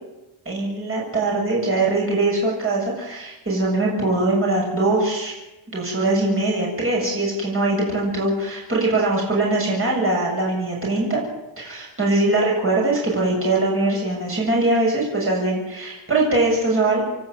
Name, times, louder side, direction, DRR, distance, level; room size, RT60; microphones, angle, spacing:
voice 1, 0.4-5.3 5.7-11.2 11.6-17.0, right 2 dB, 25° right, -3 dB, 7.8 m, -22 dB
28.0 x 12.5 x 9.5 m, 0.99 s
wide cardioid pair, 165°, 49 cm